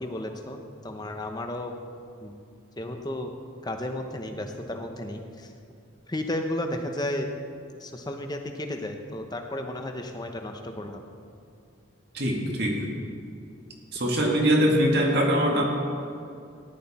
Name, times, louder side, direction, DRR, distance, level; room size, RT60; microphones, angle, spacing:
voice 1, 0.0-1.7 2.2-2.3 2.8-3.3 3.6-5.5 6.1-7.3 7.8-11.0, left 1 dB, 20° left, 5 dB, 0.8 m, -33 dB
voice 2, 12.1-12.8 13.9-15.6, equal, 50° right, 0 dB, 1.9 m, -22 dB
14.5 x 11.0 x 4.2 m, 2.5 s
head